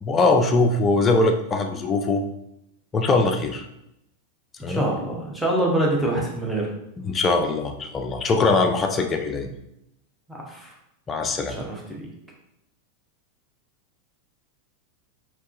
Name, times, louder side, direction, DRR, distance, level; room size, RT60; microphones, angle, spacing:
voice 1, 0.0-2.2 2.9-3.6 4.6-4.9 7.0-9.5 11.1-11.6, left 3 dB, 20° left, 5 dB, 0.4 m, -21 dB
voice 2, 4.6-6.7 10.3-10.7 11.5-12.1, right 1 dB, ahead, -3 dB, 0.8 m, -25 dB
3.5 x 2.8 x 2.4 m, 0.82 s
figure-of-eight pair, 90°, 0 cm